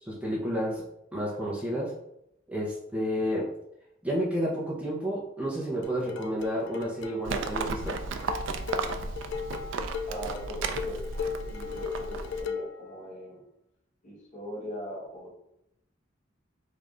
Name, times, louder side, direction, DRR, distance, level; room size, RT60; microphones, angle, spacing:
voice 1, 0.0-0.8 1.1-1.9 2.5-3.5 4.0-8.0, equal, 5° right, -5 dB, 0.6 m, -31 dB
sound 1, 5.8-12.8, left 6 dB, 65° left, 0.3 m, -37 dB
Livestock farm animals working animals, 7.2-12.4, right 4 dB, 70° right, 0.3 m, -34 dB
voice 2, 10.1-13.4 14.0-15.3, equal, 40° left, -3 dB, 1.1 m, -41 dB
3.2 x 2.5 x 3.7 m, 0.79 s
head